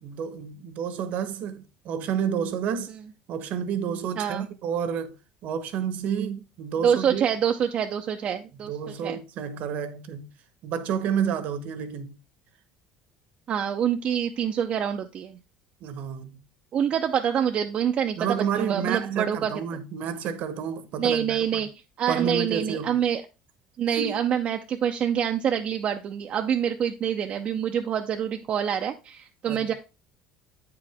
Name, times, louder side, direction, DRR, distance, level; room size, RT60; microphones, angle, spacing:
voice 1, 0.0-2.9 3.3-5.2 5.4-7.2 8.6-10.3 10.6-12.2 15.8-16.4 18.2-21.7 22.1-23.0 23.9-24.2 29.5-29.7, right 7 dB, 60° right, 1.0 m, -30 dB
voice 2, 4.2-4.5 6.8-8.7 9.0-9.2 13.5-15.4 16.7-19.5 21.0-21.7 22.0-23.2 23.8-29.7, right 8 dB, 45° right, 0.6 m, -26 dB
8.4 x 4.9 x 3.5 m
supercardioid pair, 100°, 3 cm